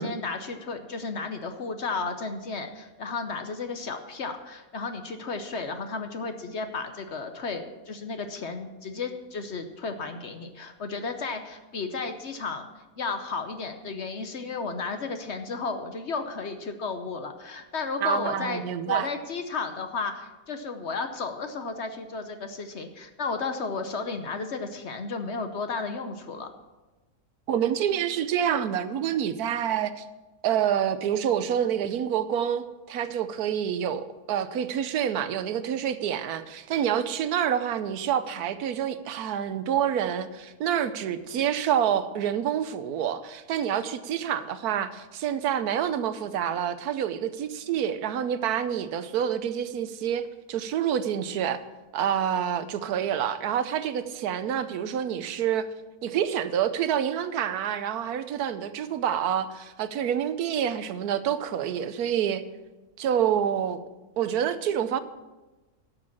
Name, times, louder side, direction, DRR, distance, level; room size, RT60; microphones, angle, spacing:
voice 1, 0.0-12.7 13.0-26.5, left 4 dB, 50° left, 7 dB, 1.0 m, -33 dB
voice 2, 18.0-19.1 27.5-30.0 30.4-51.6 51.9-55.7 56.0-62.4 63.0-63.8 64.2-65.0, right 9 dB, 80° right, 12 dB, 1.2 m, -27 dB
12.0 x 6.7 x 7.3 m, 1.1 s
omnidirectional pair, 1.6 m